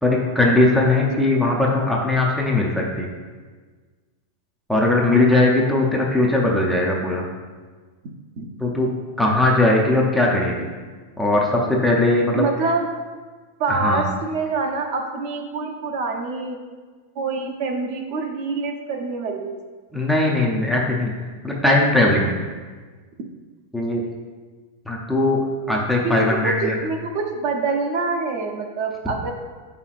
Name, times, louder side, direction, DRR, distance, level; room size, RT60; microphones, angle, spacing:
voice 1, 0.0-3.1 4.7-7.2 8.6-8.9 9.2-10.7 11.2-12.4 13.7-14.1 19.9-21.1 21.4-22.3 23.7-24.1 24.9-26.8, left 2 dB, ahead, -3 dB, 0.5 m, -19 dB
voice 2, 12.3-12.9 13.6-16.6 17.2-19.6 26.0-29.3, right 4 dB, 40° right, 3 dB, 0.7 m, -25 dB
7.6 x 5.6 x 2.5 m, 1.4 s
supercardioid pair, 170°, 0 cm